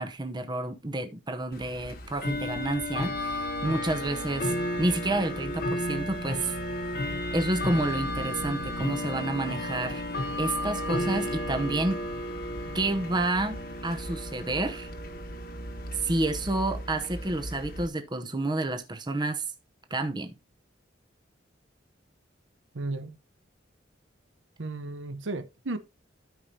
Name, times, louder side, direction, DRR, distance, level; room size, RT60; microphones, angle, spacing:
voice 1, 0.0-6.6 7.3-10.0 10.4-12.1 12.7-14.9 15.9-19.5 19.9-20.3, right 2 dB, 25° right, 0.8 m, -29 dB
Bell / Tick-tock, 1.5-17.9, left 1 dB, 50° left, 1.3 m, -33 dB
voice 2, 22.7-23.2 24.6-25.8, right 2 dB, 75° right, 0.9 m, -34 dB
13.0 x 5.3 x 2.8 m
head